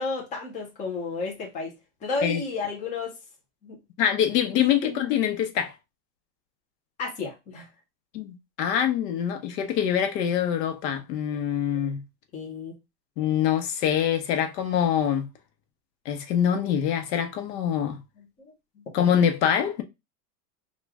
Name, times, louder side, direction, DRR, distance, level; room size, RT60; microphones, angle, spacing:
voice 1, 0.0-1.7 2.0-3.1 3.6-3.8 4.8-5.0 7.0-7.7 12.3-12.7 18.4-18.5, left 4 dB, 15° left, 0.6 m, -32 dB
voice 2, 4.0-5.7 8.1-12.0 13.2-15.3 16.0-18.0 18.9-19.8, left 9 dB, 80° left, 0.9 m, -24 dB
3.1 x 2.4 x 3.4 m
supercardioid pair, 160°, 49 cm